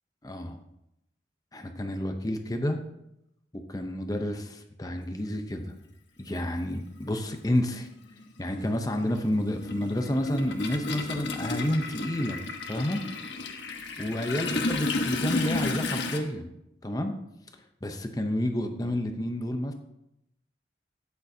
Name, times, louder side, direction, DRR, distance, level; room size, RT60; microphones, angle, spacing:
voice 1, 0.2-0.6 1.5-2.8 3.5-5.7 6.2-7.9 8.4-12.4 12.7-13.0 14.0-16.5 16.8-17.2 17.8-19.7, left 1 dB, 20° left, 5 dB, 0.7 m, -30 dB
Toilet flush, 5.7-5.8 7.1-7.2 7.6-16.2, left 2 dB, 75° left, 1.2 m, -32 dB
12.5 x 9.0 x 2.8 m, 0.84 s
head